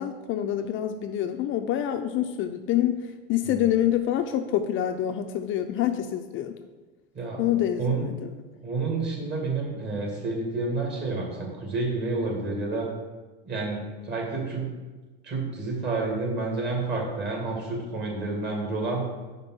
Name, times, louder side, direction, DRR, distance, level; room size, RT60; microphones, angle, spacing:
voice 1, 0.0-3.0 3.3-6.6 7.4-8.3, left 11 dB, 45° left, 7 dB, 0.5 m, -26 dB
voice 2, 7.1-7.5 7.8-8.1 8.6-12.9 13.5-14.7 15.2-19.0, right 3 dB, 35° right, -1 dB, 2.4 m, -29 dB
5.2 x 4.6 x 6.1 m, 1.3 s
supercardioid pair, 100°, 30 cm